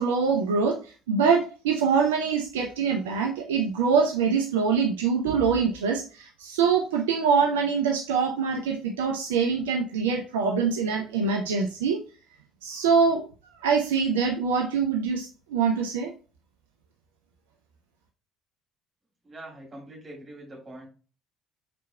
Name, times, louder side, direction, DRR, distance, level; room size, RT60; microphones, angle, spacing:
voice 1, 0.0-12.0 12.6-13.3 13.6-16.1, right 5 dB, 70° right, 2 dB, 0.5 m, -24 dB
voice 2, 19.2-20.9, right 1 dB, 25° right, -1 dB, 2.7 m, -43 dB
5.0 x 4.5 x 2.2 m, 0.36 s
figure-of-eight pair, 55°, 0 cm